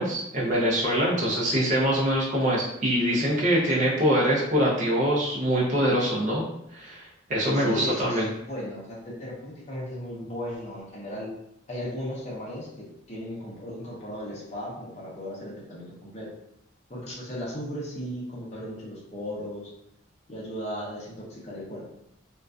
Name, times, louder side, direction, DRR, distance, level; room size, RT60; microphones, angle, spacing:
voice 1, 0.0-6.4 6.7-7.0 7.3-8.3, equal, 40° right, -5 dB, 0.5 m, -24 dB
voice 2, 7.5-11.3 11.7-16.3 16.9-19.7 20.3-21.9, equal, 35° left, -6 dB, 0.6 m, -36 dB
2.4 x 2.2 x 2.3 m, 0.79 s
head